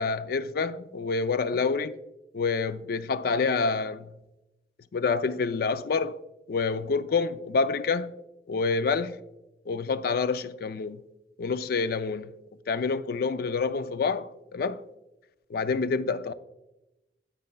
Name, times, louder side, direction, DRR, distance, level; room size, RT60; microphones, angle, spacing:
voice 1, 0.0-2.0 2.3-4.1 4.9-6.2 6.5-8.1 8.5-9.2 9.7-11.0 11.4-12.3 12.7-14.3 14.5-14.8 15.5-16.3, left 4 dB, 55° left, 0.4 m, -27 dB
9.4 x 7.9 x 2.2 m
head